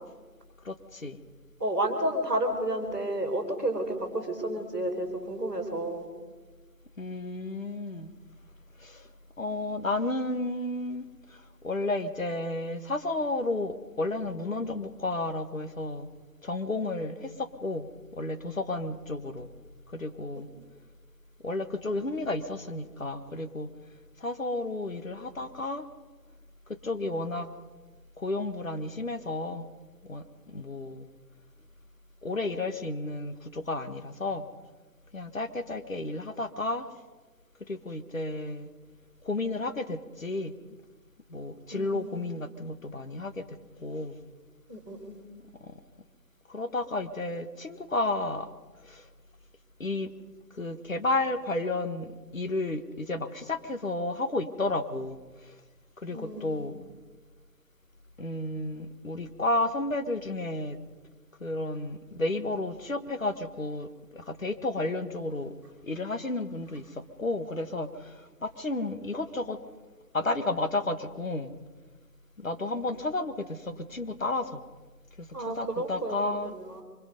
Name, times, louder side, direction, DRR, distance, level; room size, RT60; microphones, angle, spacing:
voice 1, 0.6-1.2 7.0-8.1 8.8-9.1 9.4-16.1 16.4-19.5 19.9-20.5 21.4-23.7 24.2-25.9 26.7-27.5 28.2-29.7 30.0-31.1 32.2-34.5 35.1-36.9 37.7-38.7 39.2-40.5 41.3-44.2 45.6-45.8 46.5-48.5 48.8-49.1 49.8-50.1 50.5-55.6 56.0-56.8 58.2-60.8 61.4-65.5 65.8-69.6 70.1-71.5 72.4-74.6 75.2-76.5, left 2 dB, 55° left, 9 dB, 1.6 m, -32 dB
voice 2, 1.6-6.0 41.7-42.2 44.7-45.2 56.1-56.6 75.3-76.2 76.5-76.8, right 1 dB, 10° right, -13 dB, 1.8 m, -31 dB
24.0 x 22.5 x 5.3 m, 1.3 s
figure-of-eight pair, 170°, 48 cm